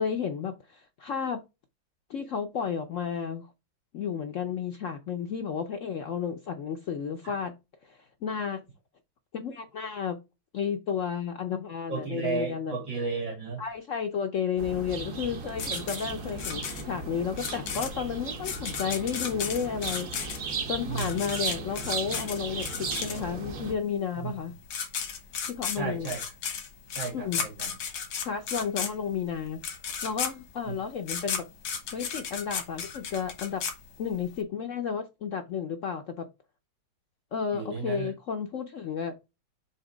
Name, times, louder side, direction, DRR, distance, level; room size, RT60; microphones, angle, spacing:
voice 1, 0.0-1.4 2.1-3.5 3.9-7.5 7.8-8.6 9.3-10.2 10.5-12.8 13.6-20.4 20.7-24.5 25.5-26.1 27.1-27.4 28.3-29.6 30.0-31.4 31.9-33.6 34.0-36.3 37.3-39.1, left 7 dB, 70° left, 0.7 m, -32 dB
voice 2, 11.9-13.6 20.9-21.3 24.2-24.3 25.8-26.2 26.5-26.6 26.9-27.8 30.7-30.8 37.5-38.1, right 4 dB, 85° right, 3.3 m, -33 dB
sound 1, 14.6-23.7, right 4 dB, 50° right, 1.2 m, -36 dB
sound 2, 15.6-23.5 24.4-24.5 24.7-34.3, left 6 dB, 85° left, 2.0 m, -34 dB
7.1 x 3.0 x 4.9 m
omnidirectional pair, 2.1 m